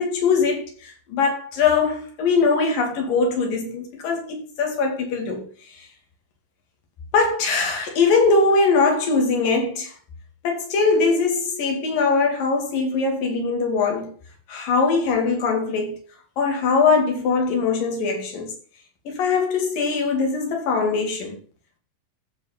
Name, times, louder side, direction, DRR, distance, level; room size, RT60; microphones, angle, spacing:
voice 1, 0.0-5.5 5.8-5.9 7.1-9.9 10.4-14.1 14.5-16.0 16.4-18.5 19.1-21.4, left 4 dB, 85° left, 4.0 m, -21 dB
14.5 x 5.1 x 5.1 m
omnidirectional pair, 3.8 m